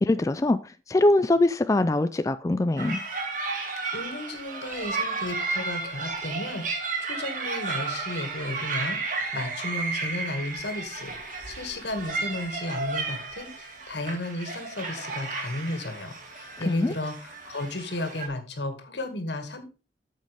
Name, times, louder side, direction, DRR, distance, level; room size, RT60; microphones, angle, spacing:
voice 1, 0.0-3.0 16.7-16.9, left 2 dB, 20° left, 0.3 m, -23 dB
sound 1, 2.8-18.3, right 3 dB, 50° right, 1.8 m, -33 dB
voice 2, 3.9-19.7, left 1 dB, 80° left, 2.0 m, -34 dB
9.2 x 7.4 x 3.5 m
head